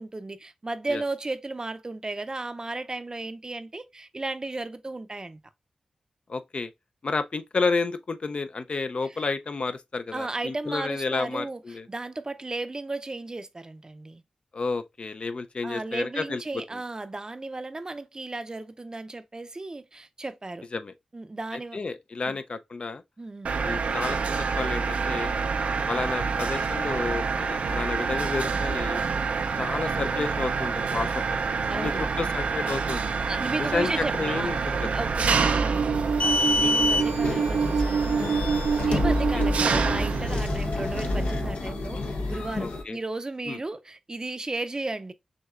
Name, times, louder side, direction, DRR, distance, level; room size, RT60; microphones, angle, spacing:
voice 1, 0.0-5.4 10.1-11.6 11.9-14.2 15.6-20.7 21.1-21.8 22.3-22.4 23.2-23.5 31.7-32.1 33.3-34.5 34.9-35.8 36.2-42.0 42.3-45.1, right 2 dB, 35° right, 0.5 m, -34 dB
voice 2, 6.3-6.7 7.0-11.9 14.5-16.6 20.7-20.9 21.5-23.0 23.6-25.3 25.9-29.0 29.6-31.4 31.7-33.2 33.6-34.9 39.3-39.5 42.6-43.0 43.5-43.6, left 4 dB, 55° left, 0.4 m, -31 dB
Mechanisms, 23.4-41.5, right 5 dB, 80° right, 0.4 m, -27 dB
sound 1, 35.9-42.8, left 2 dB, 85° left, 0.8 m, -28 dB
6.3 x 2.7 x 2.4 m
cardioid pair, 55°, 2 cm